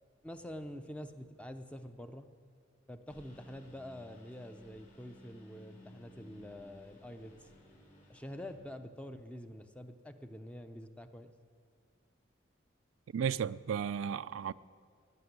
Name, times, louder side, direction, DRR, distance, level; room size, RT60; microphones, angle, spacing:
voice 1, 0.2-2.3 2.9-7.5 8.1-11.3, left 1 dB, 5° left, 0.5 m, -46 dB
Engine, 3.1-8.5, equal, 40° left, 3.7 m, -58 dB
voice 2, 13.1-14.5, right 7 dB, 90° right, 0.3 m, -34 dB
17.5 x 6.0 x 9.5 m
head